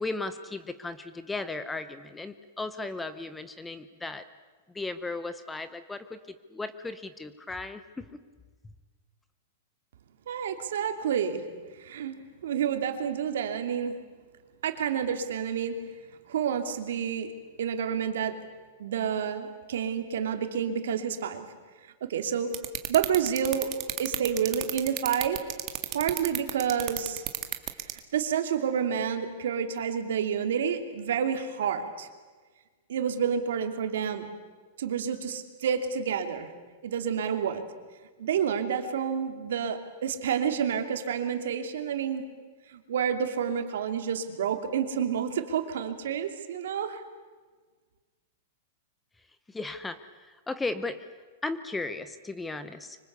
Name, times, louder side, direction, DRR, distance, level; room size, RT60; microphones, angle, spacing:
voice 1, 0.0-4.2 4.7-6.2 6.5-8.1 49.5-50.0 50.5-51.1 51.4-53.0, left 3 dB, 5° left, 12 dB, 0.8 m, -35 dB
voice 2, 10.3-11.4 11.8-14.0 14.6-15.8 16.3-17.3 17.6-18.4 18.8-21.4 22.0-22.5 22.9-23.7 24.0-25.4 25.9-27.2 28.1-32.1 32.9-34.3 34.8-36.5 36.8-37.6 38.2-42.2 42.7-47.0, right 8 dB, 70° right, 7 dB, 2.8 m, -29 dB
sound 1, 22.5-28.0, right 15 dB, 25° right, 1.7 m, -31 dB
25.0 x 25.0 x 8.2 m, 1.4 s
supercardioid pair, 175°, 0 cm